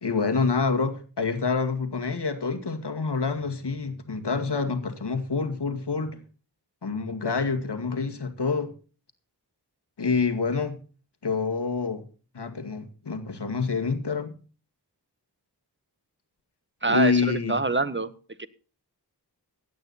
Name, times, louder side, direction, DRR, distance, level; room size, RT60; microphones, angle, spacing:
voice 1, 0.0-6.2 6.8-8.7 10.0-10.8 11.2-12.1 12.3-14.4 16.9-17.5, left 4 dB, 75° left, 2.2 m, -27 dB
voice 2, 16.8-18.1 18.4-18.5, right 3 dB, 25° right, 1.4 m, -25 dB
17.0 x 9.7 x 4.2 m
wide cardioid pair, 45°, 41 cm